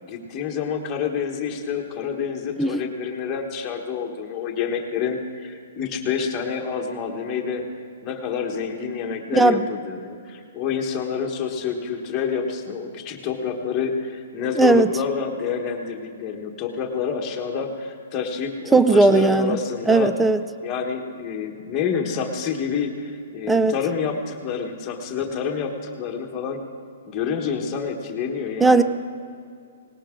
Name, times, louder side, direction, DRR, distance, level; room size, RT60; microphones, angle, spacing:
voice 1, 0.0-7.6 8.0-20.1 20.6-26.6 27.1-28.8, left 6 dB, 15° left, 1 dB, 1.3 m, -28 dB
voice 2, 9.3-9.6 14.6-14.9 18.7-19.6 19.9-20.4 23.5-23.7 28.6-28.8, right 3 dB, 5° right, 13 dB, 0.3 m, -17 dB
19.0 x 18.0 x 3.8 m, 2.4 s
hypercardioid pair, 180°, 0 cm